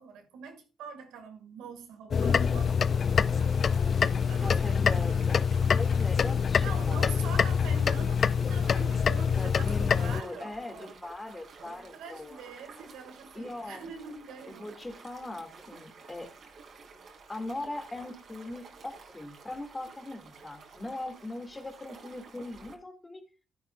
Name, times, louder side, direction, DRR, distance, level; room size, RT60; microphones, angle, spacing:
voice 1, 0.0-5.2 6.6-10.9 11.6-14.7, right 6 dB, 90° right, 2.2 m, -45 dB
sound 1, 2.1-10.2, left 6 dB, 50° left, 0.4 m, -25 dB
sound 2, 3.0-22.7, right 4 dB, 60° right, 2.9 m, -52 dB
voice 2, 4.3-5.4 5.7-7.2 9.3-12.4 13.3-13.9 14.5-16.3 17.3-23.2, left 2 dB, 20° left, 2.4 m, -40 dB
12.0 x 10.5 x 2.5 m
cardioid pair, 90°, 0 cm